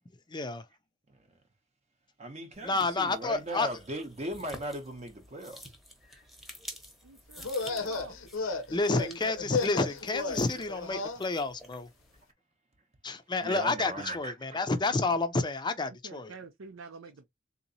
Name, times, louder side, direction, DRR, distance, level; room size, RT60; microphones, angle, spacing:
voice 1, 0.3-0.6 2.6-3.7 8.7-11.9 13.0-16.3, left 3 dB, 20° left, 0.5 m, -30 dB
voice 2, 2.2-5.7 13.4-14.6, right 1 dB, 35° right, 0.7 m, -38 dB
sound 1, 2.5-12.2, equal, ahead, 0.9 m, -50 dB
voice 3, 7.0-8.2 16.0-17.3, right 4 dB, 85° right, 0.6 m, -48 dB
sound 2, 7.4-11.2, left 4 dB, 75° left, 0.8 m, -34 dB
3.7 x 2.9 x 2.7 m
head